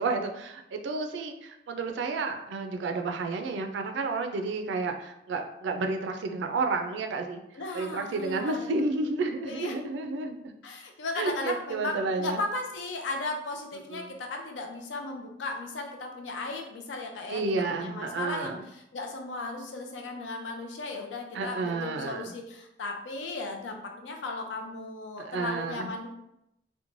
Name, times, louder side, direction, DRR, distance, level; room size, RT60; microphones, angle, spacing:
voice 1, 0.0-7.4 7.7-10.5 11.1-12.4 13.9-14.1 17.3-18.6 21.3-22.3 25.2-25.9, right 3 dB, 70° right, 5 dB, 0.3 m, -31 dB
voice 2, 7.5-8.7 9.4-9.8 10.6-17.4 17.7-26.1, left 3 dB, 90° left, 3 dB, 0.5 m, -36 dB
3.0 x 2.1 x 2.5 m, 0.83 s
head